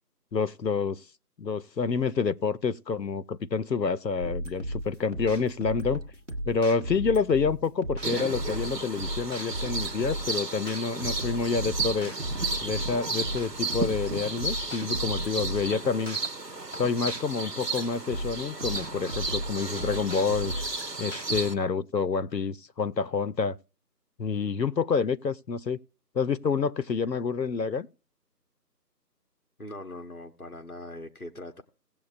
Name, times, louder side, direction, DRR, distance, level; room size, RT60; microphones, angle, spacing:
voice 1, 0.3-1.0 1.4-6.0 6.5-12.1 12.6-16.2 16.8-20.5 21.0-23.6 24.2-25.8 26.1-27.9, left 5 dB, 85° left, 0.8 m, -28 dB
sound 1, 4.2-21.4, right 1 dB, 45° right, 1.3 m, -36 dB
sound 2, 8.0-21.5, right 3 dB, 70° right, 1.2 m, -34 dB
voice 2, 29.6-31.6, left 1 dB, 60° left, 1.1 m, -41 dB
18.0 x 7.4 x 2.5 m
figure-of-eight pair, 180°, 49 cm